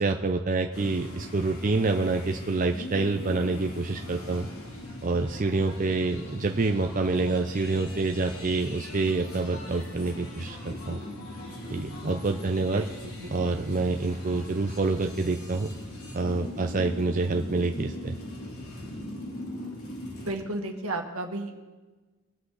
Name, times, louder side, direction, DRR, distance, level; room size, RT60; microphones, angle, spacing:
voice 1, 0.0-4.5 5.0-11.0 11.7-12.8 13.3-15.7 16.1-18.2, right 3 dB, 35° right, 4 dB, 0.5 m, -27 dB
sound 1, 0.7-20.3, left 1 dB, 80° left, 3.1 m, -40 dB
voice 2, 12.7-13.3 20.1-21.6, right 2 dB, 75° right, 3 dB, 1.7 m, -34 dB
22.0 x 8.3 x 4.0 m, 1.2 s
head